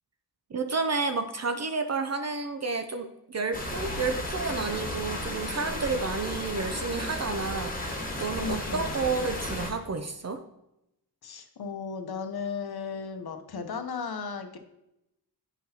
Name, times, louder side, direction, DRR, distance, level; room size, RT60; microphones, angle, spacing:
voice 1, 0.5-7.9 8.2-10.4, right 4 dB, 40° right, 8 dB, 0.5 m, -31 dB
sound 1, 3.5-9.7, left 1 dB, 20° left, 1.4 m, -34 dB
voice 2, 8.4-9.0 11.2-14.6, left 5 dB, 65° left, 7 dB, 0.8 m, -35 dB
9.2 x 5.7 x 2.8 m, 0.86 s
wide cardioid pair, 115°, 40 cm